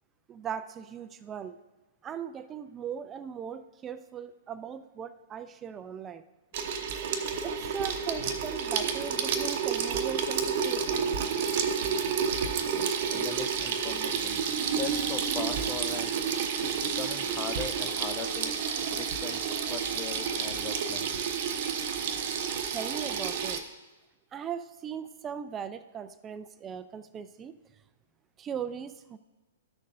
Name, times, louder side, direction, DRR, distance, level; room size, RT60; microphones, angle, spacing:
voice 1, 0.3-1.6 2.0-6.2 7.4-11.0 22.7-23.6 24.3-27.5 28.4-29.2, right 8 dB, 20° right, 13 dB, 0.4 m, -39 dB
Water tap faucet / Sink (filling or washing), 6.5-23.6, right 6 dB, 50° right, 0.8 m, -30 dB
voice 2, 13.1-16.2 16.6-18.6 18.9-21.1, left 8 dB, 25° left, 9 dB, 0.6 m, -40 dB
13.0 x 6.5 x 2.6 m, 1.1 s
figure-of-eight pair, 115°, 0 cm